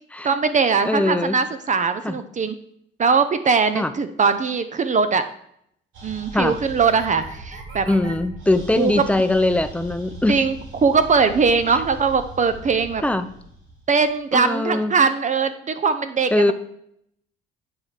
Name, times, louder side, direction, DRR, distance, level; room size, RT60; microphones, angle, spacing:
voice 1, 0.2-2.6 3.0-5.2 6.0-7.9 8.8-8.9 10.3-10.5 10.8-13.0 13.9-16.5, right 5 dB, 40° right, 10 dB, 0.6 m, -20 dB
voice 2, 0.8-1.4 2.0-2.2 3.7-3.9 6.3-6.6 7.9-10.4 11.7-11.8 13.0-13.3 14.3-14.9 16.3-16.5, left 2 dB, 5° left, 9 dB, 0.6 m, -21 dB
sound 1, 5.9-14.5, right 2 dB, 75° right, 2.5 m, -39 dB
9.6 x 3.3 x 5.8 m, 0.71 s
cardioid pair, 90°, 20 cm